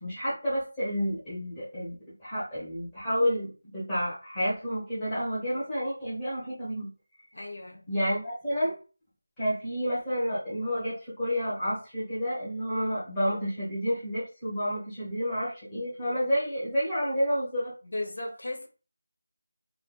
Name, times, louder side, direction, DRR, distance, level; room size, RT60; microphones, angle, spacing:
voice 1, 0.0-6.9 7.9-8.7 9.4-17.7, equal, 5° left, 0.9 m, -30 dB
voice 2, 7.3-7.8 17.8-18.7, left 2 dB, 50° left, 0.8 m, -36 dB
2.2 x 2.2 x 3.0 m
figure-of-eight pair, 180°, 0 cm